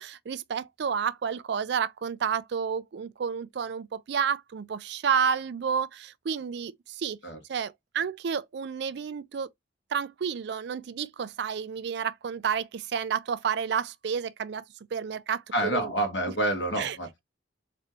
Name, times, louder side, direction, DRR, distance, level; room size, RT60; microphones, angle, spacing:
voice 1, 0.0-7.2 7.5-9.5 9.9-14.6 14.9-15.9 16.8-17.0, right 7 dB, 60° right, 0.4 m, -30 dB
voice 2, 15.5-17.1, right 1 dB, 65° left, 1.7 m, -28 dB
4.2 x 2.6 x 3.0 m
head